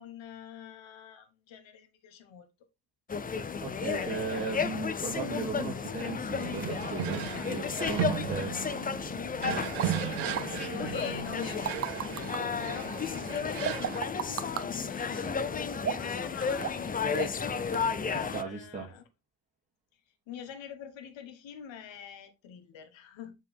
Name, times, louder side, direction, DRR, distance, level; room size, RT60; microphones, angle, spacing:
voice 1, 0.0-2.5 7.4-8.8 9.4-15.4 16.0-17.7 18.1-19.0 20.3-23.4, left 8 dB, 70° left, 1.3 m, -46 dB
sound 1, 3.1-18.4, left 6 dB, 20° left, 0.4 m, -33 dB
voice 2, 3.6-8.5 9.5-9.7 18.1-18.9, right 4 dB, 15° right, 2.4 m, -36 dB
sound 2, 6.4-14.0, right 13 dB, 80° right, 0.7 m, -36 dB
sound 3, 9.8-9.9 10.4-10.5 11.3-12.4 13.6-14.7 15.8-16.2 16.6-16.9 17.1-17.5 17.7-17.8, right 8 dB, 30° right, 0.7 m, -33 dB
6.8 x 4.7 x 3.4 m
cardioid pair, 120°, 48 cm